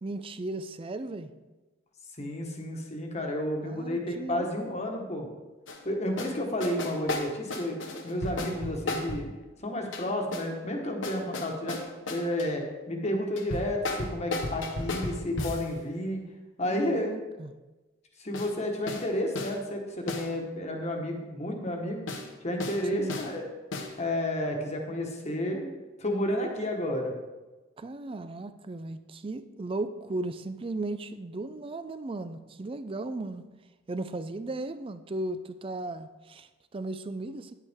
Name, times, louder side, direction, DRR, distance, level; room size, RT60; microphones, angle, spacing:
voice 1, 0.0-1.3 3.6-4.5 16.6-17.5 22.9-23.2 27.8-33.4 33.9-37.5, right 2 dB, 25° right, 12 dB, 0.4 m, -36 dB
voice 2, 2.2-5.3 5.8-7.8 8.0-9.3 9.6-11.8 12.1-16.2 16.6-17.1 18.2-22.1 22.4-23.4 24.0-25.7 26.0-27.1, left 1 dB, 35° left, 2 dB, 1.3 m, -31 dB
sound 1, 5.7-5.8 6.2-6.4 6.6-9.3 9.9-10.5 11.0-12.5 13.4-15.7 18.3-18.5 18.9-19.1 19.4-19.6 20.1-20.3 22.1-22.3 22.6-22.8 23.1-23.3 23.7-23.9, left 2 dB, 70° left, 1.1 m, -34 dB
10.0 x 8.1 x 3.6 m, 1.2 s
head